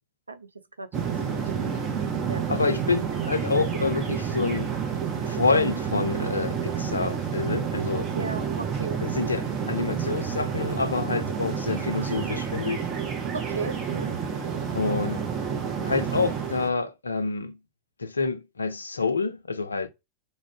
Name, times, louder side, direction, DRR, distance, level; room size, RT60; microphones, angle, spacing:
voice 1, 0.8-1.7 2.3-2.4 8.1-9.0 13.3-14.1, right 4 dB, 80° right, 0.3 m, -35 dB
sound 1, 0.9-16.7, right 7 dB, 30° right, 0.6 m, -29 dB
voice 2, 2.5-4.7 5.2-8.1 9.0-12.8 14.7-15.2 15.8-17.6 18.0-19.9, left 4 dB, 75° left, 0.4 m, -27 dB
2.3 x 2.1 x 3.4 m
figure-of-eight pair, 90°, 0 cm